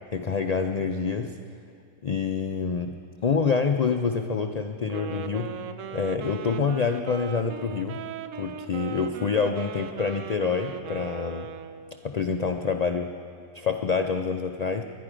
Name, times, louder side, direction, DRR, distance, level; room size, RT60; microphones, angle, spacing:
voice 1, 0.1-1.4 2.0-3.0 3.2-5.5 5.9-8.0 8.4-11.5 12.0-13.1 13.5-14.8, left 5 dB, 90° left, 5 dB, 0.3 m, -27 dB
Wind instrument woodwind instrument, 4.8-12.0, right 7 dB, 70° right, 1.0 m, -38 dB
20.5 x 11.5 x 5.0 m, 2.3 s
omnidirectional pair, 1.4 m